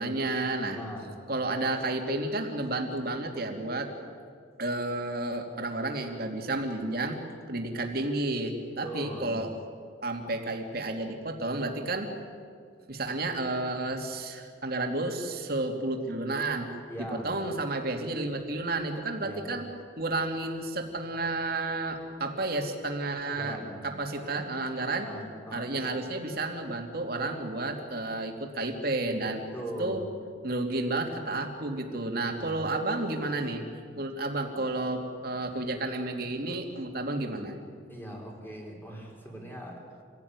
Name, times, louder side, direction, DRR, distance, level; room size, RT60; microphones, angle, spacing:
voice 1, 0.0-0.8 1.3-3.9 4.6-7.2 7.5-9.5 10.0-12.1 12.9-19.6 20.0-23.6 23.8-25.1 25.5-29.4 29.8-30.0 30.4-33.7 34.0-37.5, right 2 dB, 55° right, 3 dB, 2.9 m, -31 dB
voice 2, 0.7-1.1 8.8-9.4 16.9-17.3 19.2-19.6 23.2-23.8 24.9-25.8 29.5-30.1 32.3-32.7 37.9-39.8, equal, 10° left, 0 dB, 4.6 m, -40 dB
27.5 x 17.0 x 9.8 m, 2.2 s
head